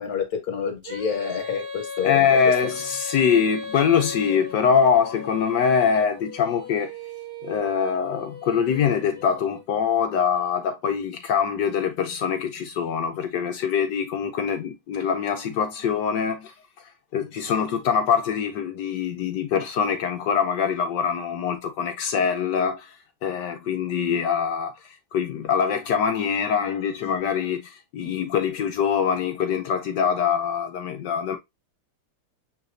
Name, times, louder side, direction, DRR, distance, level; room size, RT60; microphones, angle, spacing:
voice 1, 0.0-2.5, left 7 dB, 50° left, 1.3 m, -28 dB
Female singing, 0.8-9.7, left 2 dB, 50° right, 1.5 m, -37 dB
voice 2, 2.0-6.9 7.4-16.5 17.1-22.9 23.2-31.4, left 7 dB, 70° left, 1.1 m, -24 dB
6.7 x 3.0 x 2.5 m
omnidirectional pair, 2.4 m